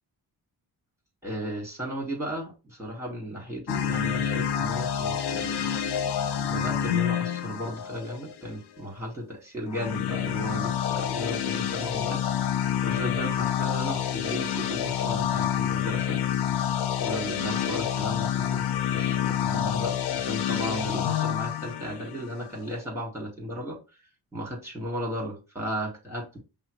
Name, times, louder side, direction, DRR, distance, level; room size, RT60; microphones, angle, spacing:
voice 1, 1.2-5.7 6.3-12.2 12.8-16.2 17.0-18.6 18.9-23.8 24.3-26.4, equal, 5° right, 0 dB, 1.9 m, -35 dB
sound 1, 3.7-8.5 9.7-22.7, left 9 dB, 70° left, 0.6 m, -28 dB
5.5 x 2.1 x 3.1 m, 0.29 s
cardioid pair, 60°, 40 cm